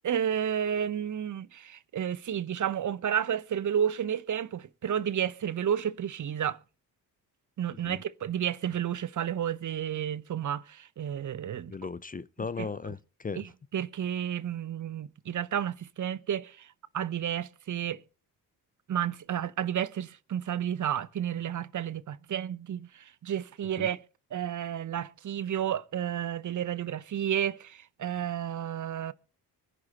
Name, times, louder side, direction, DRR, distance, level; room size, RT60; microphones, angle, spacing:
voice 1, 0.0-6.6 7.6-11.7 12.6-12.7 13.3-18.0 18.9-24.0 24.3-29.1, right 9 dB, 40° right, 0.8 m, -31 dB
voice 2, 11.7-13.5 23.8-23.9, left 4 dB, 20° left, 0.6 m, -37 dB
25.0 x 10.5 x 2.9 m
hypercardioid pair, 45°, 49 cm